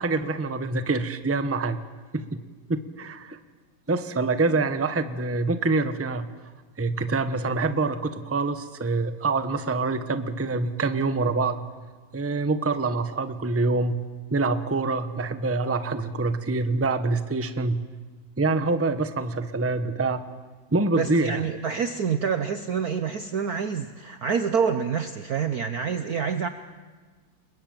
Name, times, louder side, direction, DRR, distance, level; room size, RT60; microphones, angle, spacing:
voice 1, 0.0-1.8 2.1-2.4 2.7-3.4 3.9-6.3 6.8-11.6 12.1-14.0 14.3-17.8 18.4-20.2 20.7-21.4, right 3 dB, 10° right, 10 dB, 0.8 m, -25 dB
voice 2, 21.0-26.5, right 6 dB, 55° right, 10 dB, 1.3 m, -27 dB
29.5 x 21.5 x 9.0 m, 1.4 s
omnidirectional pair, 2.2 m